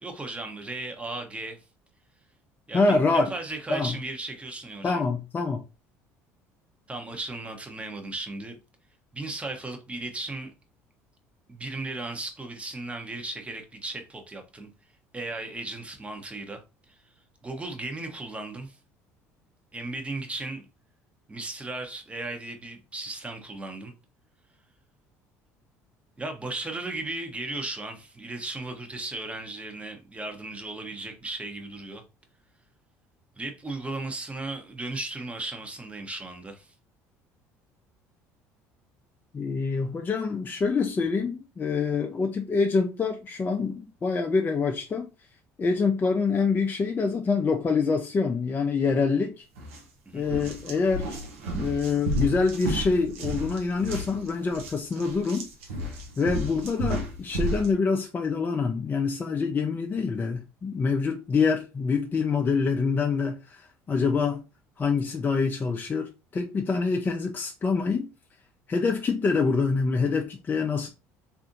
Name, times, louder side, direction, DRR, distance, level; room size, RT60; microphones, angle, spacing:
voice 1, 0.0-1.6 2.7-5.0 6.9-8.6 9.1-10.5 11.5-14.7 15.1-16.6 16.9-17.0 17.4-18.8 19.7-20.7 21.3-23.9 26.2-32.0 33.3-36.7 50.1-50.2, right 2 dB, 15° right, 0.8 m, -36 dB
voice 2, 2.7-3.3 3.7-3.9 4.8-5.6 39.3-45.1 45.6-49.4 50.1-51.2 51.5-55.5 56.2-64.4 64.8-68.1 68.7-70.9, left 4 dB, 30° left, 0.5 m, -26 dB
sound 1, 49.6-49.8 50.2-57.7, right 1 dB, 85° right, 0.6 m, -32 dB
3.4 x 2.5 x 2.6 m
hypercardioid pair, 70°, 7 cm